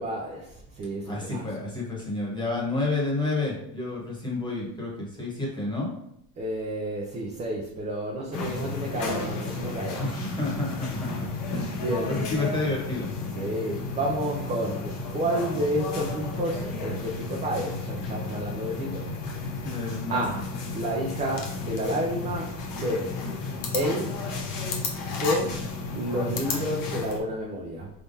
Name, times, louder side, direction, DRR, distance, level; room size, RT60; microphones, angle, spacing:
voice 1, 0.0-1.6 6.4-10.1 11.2-11.3 11.7-12.2 13.3-19.1 20.1-20.4 20.7-23.1 23.7-24.2 25.1-25.6 26.0-27.9, right 1 dB, 15° right, -2 dB, 0.3 m, -30 dB
voice 2, 1.0-5.9 10.0-13.1 19.6-20.2, left 2 dB, 10° left, -3 dB, 1.2 m, -30 dB
sound 1, 8.3-27.2, left 3 dB, 45° left, 1.0 m, -33 dB
4.5 x 3.6 x 2.7 m, 0.78 s
supercardioid pair, 135°, 47 cm